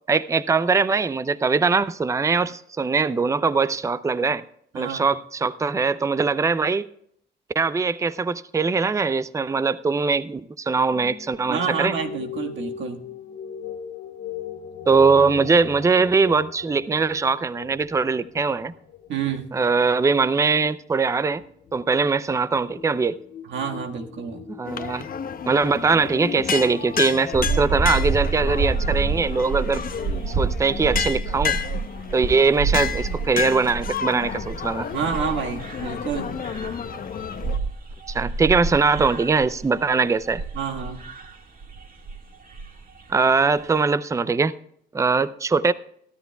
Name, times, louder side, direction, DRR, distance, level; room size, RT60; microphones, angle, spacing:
voice 1, 0.1-4.4 4.7-6.9 7.6-12.0 14.9-18.7 19.5-21.4 21.7-23.2 24.6-25.1 25.5-29.8 30.3-31.6 32.1-34.9 38.1-40.4 43.1-44.5 44.9-45.7, right 4 dB, 15° right, 0.5 m, -21 dB
sound 1, 10.9-25.5, left 8 dB, 90° left, 2.7 m, -39 dB
voice 2, 11.5-13.0 19.1-19.5 23.4-24.5 34.9-36.3 40.5-41.0, right 6 dB, 70° right, 1.7 m, -28 dB
sound 2, 24.7-37.6, left 7 dB, 45° left, 0.9 m, -31 dB
sound 3, 27.3-39.9 40.2-41.3 41.6-42.2 42.5-42.7 43.0-43.2 43.5-43.8, right 4 dB, 45° right, 1.8 m, -28 dB
23.0 x 13.0 x 2.3 m
cardioid pair, 90°, 20 cm